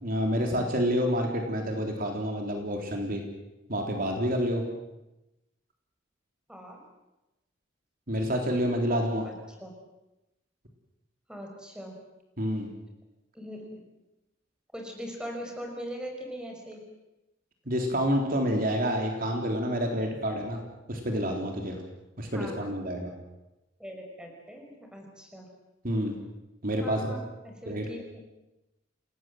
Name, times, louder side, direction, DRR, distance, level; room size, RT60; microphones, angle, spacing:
voice 1, 0.0-3.2 3.7-4.6 8.1-9.3 12.4-12.7 17.7-20.6 20.9-21.8 22.2-23.1 25.8-26.2 26.6-27.2 27.7-27.9, equal, 50° right, 2 dB, 3.7 m, -28 dB
voice 2, 6.5-6.8 9.2-9.3 9.6-9.7 11.3-12.0 13.3-13.6 14.7-16.8 22.3-22.7 23.8-25.5 26.8-28.2, equal, 5° right, 2 dB, 5.6 m, -41 dB
28.0 x 19.5 x 7.8 m, 0.97 s
head